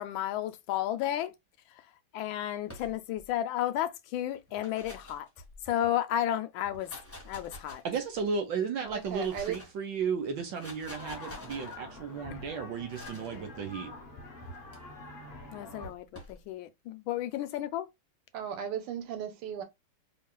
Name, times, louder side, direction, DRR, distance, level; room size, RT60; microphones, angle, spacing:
voice 1, 0.0-1.3 2.1-5.3 5.7-6.9 7.2-7.8 12.3-12.4 15.5-17.9, left 12 dB, 75° left, 1.2 m, -32 dB
sound 1, 2.6-3.3 4.4-5.9 6.6-8.2 8.9-9.8 10.4-11.8 12.9-13.4 14.4-14.8 15.8-16.4, left 1 dB, 10° left, 1.0 m, -48 dB
voice 2, 7.8-13.9, right 5 dB, 65° right, 1.4 m, -34 dB
voice 3, 8.8-9.6 18.3-19.6, right 8 dB, 85° right, 1.8 m, -36 dB
sound 2, 10.7-15.9, left 2 dB, 45° left, 0.8 m, -46 dB
4.6 x 3.0 x 2.2 m
omnidirectional pair, 2.4 m